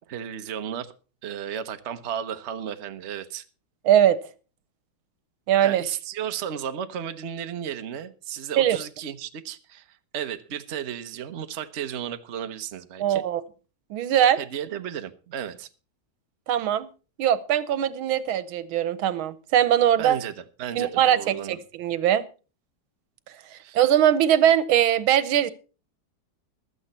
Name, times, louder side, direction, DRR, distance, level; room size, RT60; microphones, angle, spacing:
voice 1, 0.1-0.9 1.2-3.4 5.6-13.2 14.4-15.7 20.0-21.6 23.6-23.8, right 9 dB, 45° right, 9 dB, 1.0 m, -34 dB
voice 2, 3.9-4.2 5.5-5.8 8.6-8.8 13.0-13.4 13.9-14.4 16.5-16.9 17.2-20.2 20.8-22.2 23.5-25.5, right 10 dB, 85° right, 16 dB, 1.7 m, -21 dB
15.0 x 12.5 x 4.2 m, 0.34 s
omnidirectional pair, 2.2 m